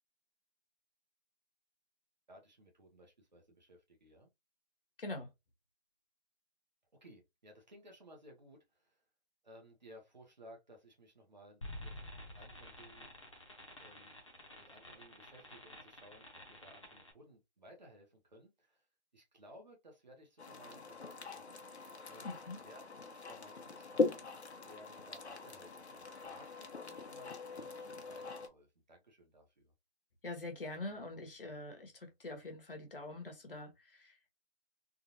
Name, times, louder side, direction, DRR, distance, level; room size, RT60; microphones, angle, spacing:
voice 1, 2.3-4.3 7.0-9.0 9.4-11.9 12.3-13.2 13.8-14.2 14.6-18.9 19.1-21.6 22.1-22.8 23.1-29.7, equal, 40° right, 1.1 m, -59 dB
voice 2, 5.0-5.3 22.2-22.6 30.2-34.3, left 2 dB, 55° left, 1.1 m, -44 dB
sound 1, 11.6-17.1, left 1 dB, 30° left, 0.8 m, -50 dB
sound 2, 20.4-28.5, left 4 dB, 75° left, 1.0 m, -41 dB
3.7 x 2.3 x 2.8 m
hypercardioid pair, 175°, 33 cm